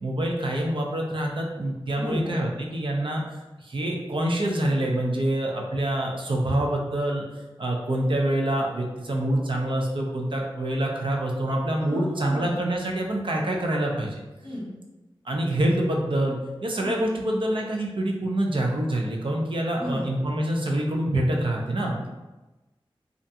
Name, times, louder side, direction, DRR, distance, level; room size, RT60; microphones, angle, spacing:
voice 1, 0.0-7.2 7.6-14.1 15.2-22.1, right 1 dB, 65° right, 0 dB, 0.5 m, -26 dB
voice 2, 1.9-2.3 11.8-12.6 14.4-14.7 16.8-17.3 19.8-20.1, left 1 dB, 50° left, -7 dB, 0.8 m, -34 dB
2.5 x 2.2 x 2.7 m, 1.1 s
wide cardioid pair, 45°, 9 cm